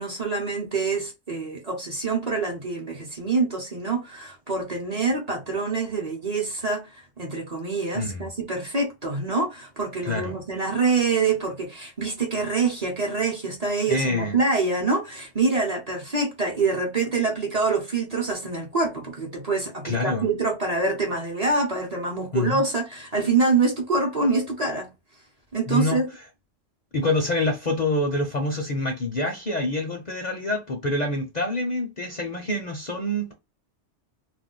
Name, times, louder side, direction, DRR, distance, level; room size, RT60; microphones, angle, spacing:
voice 1, 0.0-24.9 25.5-26.1, right 3 dB, 40° right, 0.8 m, -25 dB
voice 2, 7.9-8.2 10.0-10.4 13.9-14.4 19.8-20.3 22.3-22.6 25.7-26.0 26.9-33.3, left 2 dB, 45° left, 0.6 m, -26 dB
2.5 x 2.2 x 3.7 m
omnidirectional pair, 1.2 m